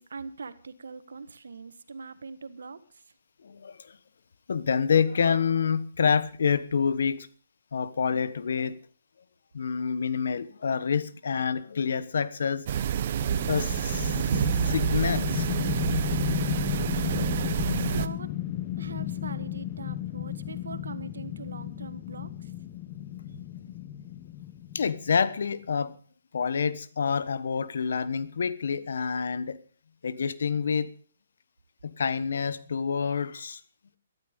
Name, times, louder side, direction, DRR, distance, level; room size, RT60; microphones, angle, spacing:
voice 1, 0.0-3.1 17.7-18.3 18.8-22.5, right 4 dB, 80° right, 1.5 m, -42 dB
voice 2, 4.5-7.3 7.7-8.7 9.5-12.6 13.5-15.6 24.7-25.9 26.3-29.6 30.0-30.9 31.8-33.6, left 6 dB, 70° left, 1.2 m, -27 dB
sound 1, 12.7-18.1, right 9 dB, 50° right, 0.9 m, -28 dB
sound 2, 13.2-25.4, left 13 dB, 35° left, 1.3 m, -34 dB
14.5 x 12.5 x 5.2 m
hypercardioid pair, 145°, 0 cm